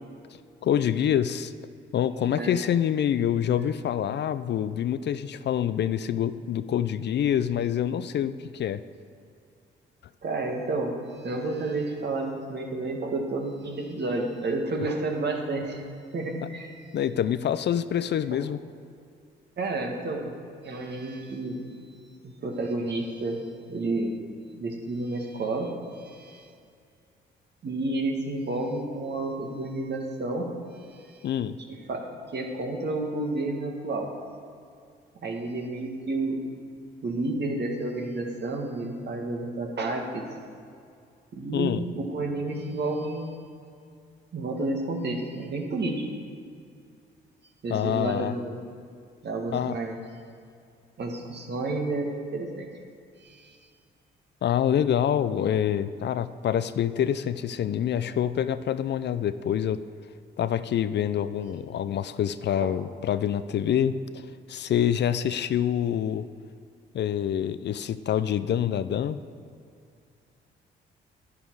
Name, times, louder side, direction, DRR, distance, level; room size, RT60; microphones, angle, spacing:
voice 1, 0.6-1.5 1.9-8.8 16.9-18.6 31.2-31.6 41.5-41.9 47.7-48.4 49.5-49.8 54.4-59.8 60.4-64.0 64.5-66.3 66.9-69.2, left 9 dB, 55° left, 13 dB, 0.5 m, -26 dB
voice 2, 10.2-15.8 16.1-16.7 18.3-18.4 19.6-20.3 20.6-21.6 21.9-22.0 22.2-23.4 23.7-24.2 24.5-26.5 27.6-31.3 31.9-34.1 35.2-36.4 37.0-40.3 41.3-41.8 42.1-43.4 44.3-46.0 47.6-48.6 49.2-50.0 51.0-52.7 53.2-53.7 62.6-62.7, right 2 dB, 55° right, 2 dB, 1.8 m, -31 dB
10.5 x 9.8 x 4.7 m, 2.4 s
supercardioid pair, 60°, 21 cm